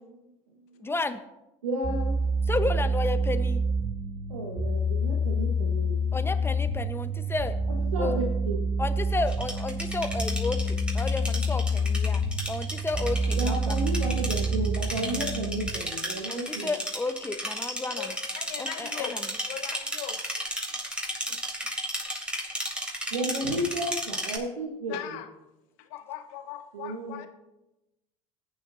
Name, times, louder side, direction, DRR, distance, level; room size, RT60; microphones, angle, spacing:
voice 1, 0.8-1.2 2.5-3.6 6.1-7.6 8.0-8.2 8.8-13.7 16.3-18.1 18.6-19.3, left 3 dB, 15° left, 10 dB, 1.1 m, -32 dB
voice 2, 1.6-2.3 4.3-6.0 7.8-8.6 13.4-16.7 23.1-25.2 26.7-27.2, right 1 dB, 90° right, 0 dB, 1.5 m, -32 dB
sound 1, 1.8-15.7, equal, 30° right, 2.4 m, -28 dB
sound 2, 9.3-24.4, equal, 5° right, 3.4 m, -34 dB
voice 3, 18.0-19.1 19.5-20.2 21.3-21.7 24.9-25.3 25.8-27.3, left 11 dB, 70° left, 8 dB, 1.2 m, -39 dB
20.0 x 9.6 x 2.8 m, 0.95 s
hypercardioid pair, 70°, 17 cm